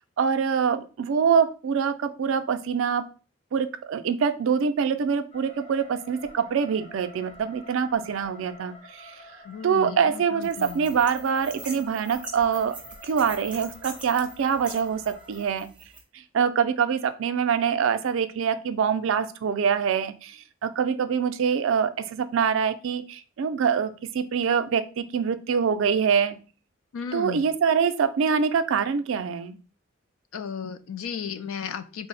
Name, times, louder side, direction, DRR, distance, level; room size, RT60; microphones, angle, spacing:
voice 1, 0.2-3.0 3.5-9.2 9.6-12.8 13.0-15.7 16.1-26.4 27.1-29.6, right 6 dB, 70° right, 11 dB, 0.3 m, -25 dB
sound 1, 5.3-15.5, left 1 dB, 30° left, 0.8 m, -49 dB
voice 2, 9.5-10.9 26.9-27.4 30.3-32.1, left 7 dB, 80° left, 11 dB, 0.4 m, -35 dB
sound 2, 10.4-16.0, right 2 dB, 5° right, 0.6 m, -43 dB
3.4 x 2.0 x 3.9 m, 0.36 s
head